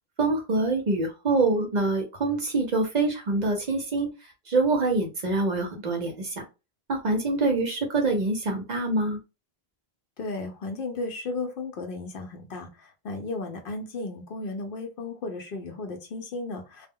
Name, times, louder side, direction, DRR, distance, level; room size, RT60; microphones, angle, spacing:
voice 1, 0.2-4.1 4.5-6.5 6.9-9.2, right 3 dB, 50° right, 3 dB, 0.6 m, -25 dB
voice 2, 10.2-16.9, left 3 dB, 65° left, 4 dB, 0.7 m, -34 dB
2.1 x 2.0 x 3.5 m, 0.28 s
omnidirectional pair, 1.0 m